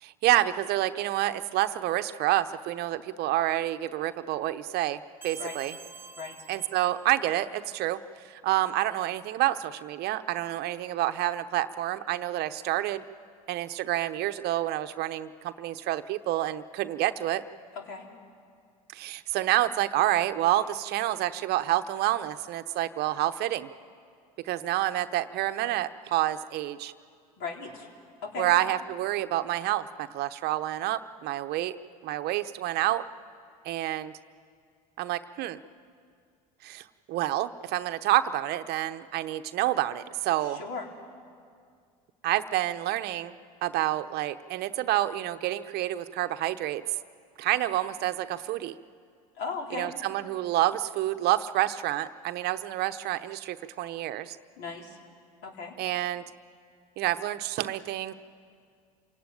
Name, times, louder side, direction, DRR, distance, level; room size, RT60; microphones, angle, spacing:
voice 1, 0.0-5.7 6.5-13.0 13.5-17.4 18.9-23.7 24.4-26.9 28.4-31.8 32.0-33.0 33.6-34.1 35.0-35.6 36.6-40.6 42.2-46.8 47.4-48.7 49.7-54.4 55.8-56.2 57.0-58.1, right 14 dB, 55° right, 11 dB, 0.9 m, -28 dB
sound 1, 5.2-7.8, right 5 dB, 10° right, 1.8 m, -47 dB
voice 2, 17.7-18.1 27.4-27.9 28.2-28.5 40.4-40.9 49.4-49.9 54.6-55.0 55.4-55.7, left 5 dB, 60° left, 1 dB, 4.1 m, -37 dB
27.5 x 17.5 x 9.1 m, 2.2 s
hypercardioid pair, 75°, 20 cm